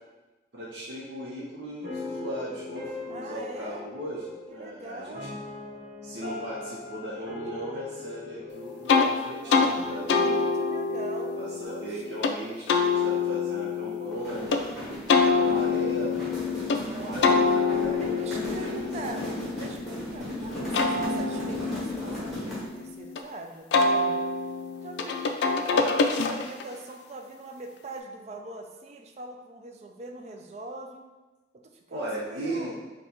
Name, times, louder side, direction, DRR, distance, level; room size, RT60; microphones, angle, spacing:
voice 1, 0.5-5.2 6.0-10.4 11.4-16.3 17.0-19.3 25.7-26.0 31.9-32.7, right 1 dB, 85° right, -7 dB, 0.7 m, -37 dB
sound 1, 1.8-12.9, left 3 dB, 55° right, 1.3 m, -41 dB
voice 2, 3.1-3.8 4.5-5.4 9.4-11.4 11.6-12.2 16.3-17.5 17.9-19.3 19.6-24.2 24.8-31.0 31.5-32.8, right 2 dB, 40° right, 4 dB, 0.4 m, -42 dB
sound 2, 8.9-9.1 9.5-9.7 10.1-12.3 12.7-14.6 15.1-16.8 17.2-20.1 20.5-23.2 23.7-26.7, left 4 dB, 85° left, 0.3 m, -26 dB
sound 3, 14.1-22.8, equal, ahead, 1.2 m, -35 dB
3.9 x 2.2 x 4.3 m, 1.2 s
head